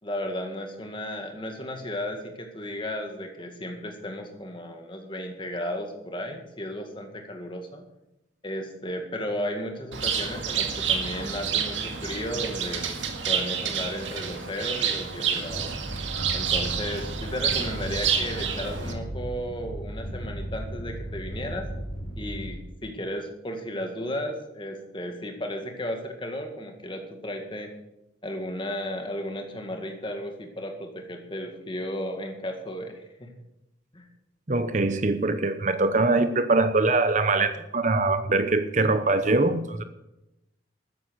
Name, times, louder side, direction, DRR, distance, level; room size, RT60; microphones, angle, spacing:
voice 1, 0.0-7.8 8.4-12.8 13.3-15.7 16.3-21.7 22.2-27.7 28.2-33.3 33.9-34.1, equal, 25° left, 4 dB, 2.0 m, -34 dB
Bird, 9.9-18.9, right 7 dB, 80° right, 2.1 m, -29 dB
sound 1, 15.5-22.6, right 1 dB, 65° left, 5.5 m, -36 dB
voice 2, 34.5-39.8, right 3 dB, 40° right, 10 dB, 0.8 m, -23 dB
13.5 x 9.7 x 6.5 m, 0.91 s
head